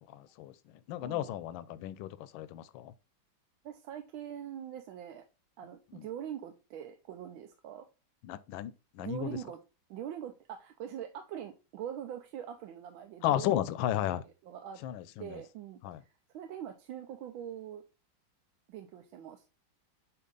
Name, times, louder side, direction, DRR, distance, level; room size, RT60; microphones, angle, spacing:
voice 1, 0.0-2.9 5.9-6.1 8.2-9.4 13.2-14.2 14.8-15.4 15.8-16.0, left 12 dB, 80° left, 1.3 m, -34 dB
voice 2, 3.6-5.2 5.6-7.9 9.0-9.6 9.9-13.5 14.5-14.8 15.2-15.8 16.3-17.8 18.7-19.4, right 10 dB, 85° right, 1.5 m, -43 dB
8.4 x 2.9 x 3.8 m
omnidirectional pair, 2.1 m